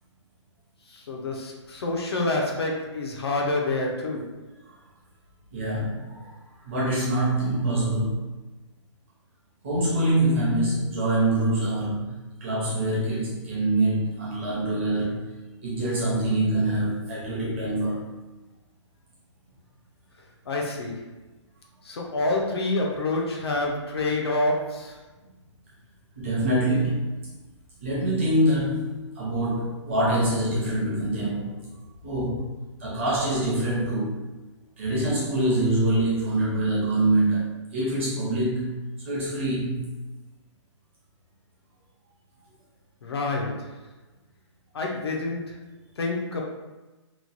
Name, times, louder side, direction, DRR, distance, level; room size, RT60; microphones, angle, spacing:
voice 1, 0.9-4.3 20.5-21.1 21.8-25.0 43.0-43.8 44.7-45.6 46.0-46.4, left 2 dB, 55° left, 0 dB, 0.5 m, -27 dB
voice 2, 5.5-6.3 6.6-8.2 9.6-12.1 12.4-15.3 15.6-18.1 26.1-27.1 27.8-31.7 32.0-32.5 32.8-34.2 34.8-38.7 39.0-39.8, right 1 dB, 25° right, -8 dB, 0.7 m, -25 dB
3.0 x 2.2 x 2.5 m, 1.1 s
hypercardioid pair, 175°, 16 cm